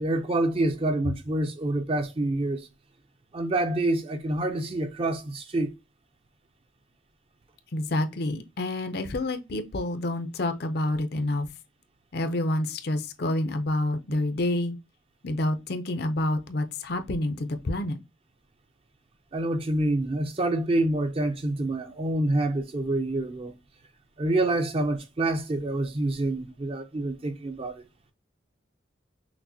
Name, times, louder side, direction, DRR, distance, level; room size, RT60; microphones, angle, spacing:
voice 1, 0.0-2.6 3.3-5.7 14.1-14.2 19.3-23.5 24.2-27.8, right 2 dB, 30° right, 0.4 m, -27 dB
voice 2, 7.7-11.5 12.1-14.8 15.2-18.0, left 1 dB, 50° left, 0.5 m, -28 dB
5.9 x 2.1 x 2.7 m
head